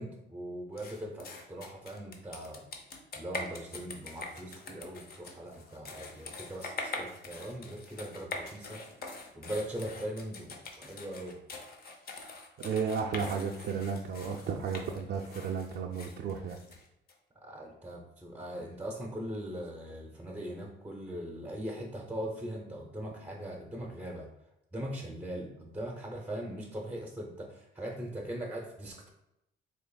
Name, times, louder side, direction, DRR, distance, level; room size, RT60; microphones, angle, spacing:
voice 1, 0.0-2.6 3.1-8.8 9.3-11.4 17.4-24.3 24.7-29.1, right 1 dB, 10° right, -1 dB, 0.6 m, -40 dB
sound 1, 0.8-17.1, left 3 dB, 50° left, 0.7 m, -44 dB
voice 2, 12.6-16.6, right 6 dB, 60° right, 0 dB, 0.4 m, -33 dB
4.4 x 3.0 x 2.3 m, 0.87 s
cardioid pair, 90°, 20 cm